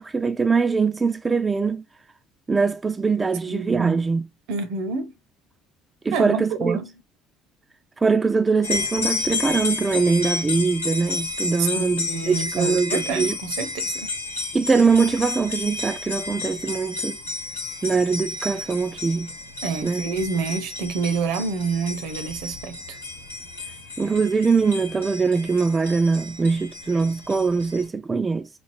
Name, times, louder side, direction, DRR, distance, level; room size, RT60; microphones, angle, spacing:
voice 1, 0.0-1.8 2.5-4.2 6.0-6.8 8.0-13.4 14.5-17.2 17.8-19.3 19.8-20.0 24.0-28.5, right 4 dB, 25° right, 0.4 m, -22 dB
voice 2, 3.5-4.0 4.5-5.1 6.1-6.9 11.6-14.2 19.6-23.0, right 5 dB, 60° right, 0.8 m, -28 dB
sound 1, 8.6-27.9, left 3 dB, 85° left, 1.0 m, -31 dB
4.4 x 2.7 x 3.1 m
figure-of-eight pair, 55°, 0 cm